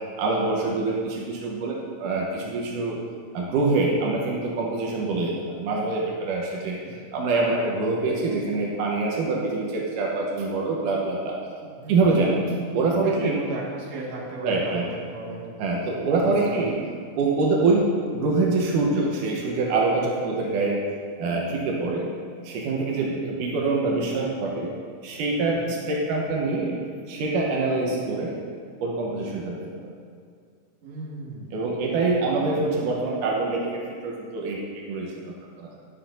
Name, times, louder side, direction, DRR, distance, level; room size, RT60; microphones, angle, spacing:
voice 1, 0.2-3.0 3.3-6.8 7.1-11.4 11.9-12.5 12.7-13.4 14.4-14.9 15.6-16.7 17.2-20.8 21.2-22.1 22.4-24.7 25.0-28.4 28.8-29.7 31.5-35.7, right 3 dB, 85° right, -2 dB, 2.6 m, -25 dB
voice 2, 6.6-7.0 11.6-12.6 13.0-15.6 16.1-16.6 23.0-23.2 25.5-25.7 30.8-31.6 32.3-32.5, right 2 dB, 60° right, -5 dB, 2.9 m, -36 dB
13.0 x 10.5 x 2.6 m, 2.2 s
omnidirectional pair, 3.6 m